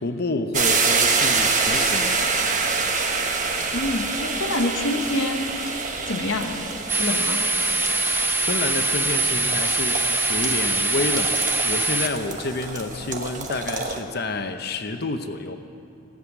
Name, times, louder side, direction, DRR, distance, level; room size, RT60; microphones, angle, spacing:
voice 1, 0.0-2.2 8.5-15.6, left 2 dB, 50° left, 7 dB, 0.8 m, -29 dB
sound 1, 0.5-14.0, right 4 dB, 40° right, 1.2 m, -26 dB
voice 2, 3.7-5.5 5.8-6.6 7.0-7.5, left 2 dB, 70° left, 5 dB, 1.1 m, -26 dB
sound 2, 6.9-12.1, right 2 dB, 10° right, 0.6 m, -23 dB
18.0 x 7.8 x 9.7 m, 2.7 s
head